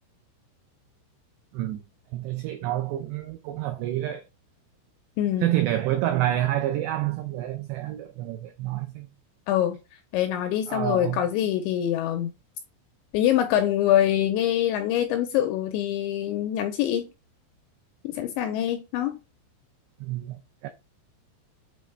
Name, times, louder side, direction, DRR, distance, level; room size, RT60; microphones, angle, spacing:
voice 1, 2.1-4.2 5.4-9.1 10.7-11.2 20.0-20.7, right 13 dB, 90° right, 2.4 m, -28 dB
voice 2, 5.2-5.5 9.5-9.8 10.1-12.3 13.1-17.1 18.0-19.2, left 11 dB, 85° left, 2.6 m, -24 dB
8.5 x 3.9 x 3.3 m
omnidirectional pair, 5.8 m